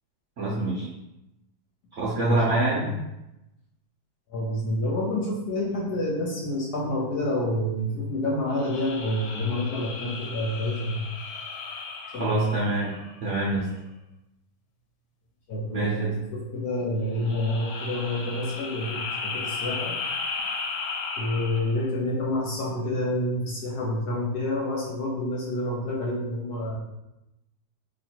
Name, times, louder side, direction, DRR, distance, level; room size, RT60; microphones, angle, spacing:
voice 1, 0.4-0.9 1.9-3.0 12.2-12.9 13.2-13.7 15.7-16.1, right 2 dB, 55° right, -7 dB, 0.9 m, -26 dB
voice 2, 2.2-2.9 4.3-11.0 12.1-12.6 15.5-19.9 21.2-26.8, left 1 dB, 65° left, -3 dB, 1.1 m, -28 dB
sound 1, 8.5-13.3 17.1-21.9, left 4 dB, 85° left, 1.5 m, -35 dB
3.1 x 2.6 x 4.3 m, 0.92 s
omnidirectional pair, 2.1 m